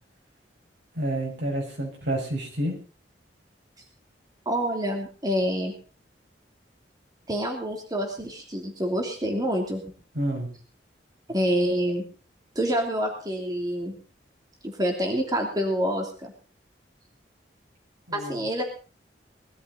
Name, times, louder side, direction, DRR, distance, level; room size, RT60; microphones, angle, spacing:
voice 1, 1.0-2.7 10.1-10.5 18.1-18.4, right 1 dB, 80° right, 1 dB, 6.2 m, -29 dB
voice 2, 4.4-5.7 7.3-9.8 11.3-12.0 12.5-13.9 14.6-16.3 18.1-18.6, equal, 20° right, 2 dB, 3.0 m, -27 dB
21.0 x 13.0 x 4.0 m, 0.37 s
head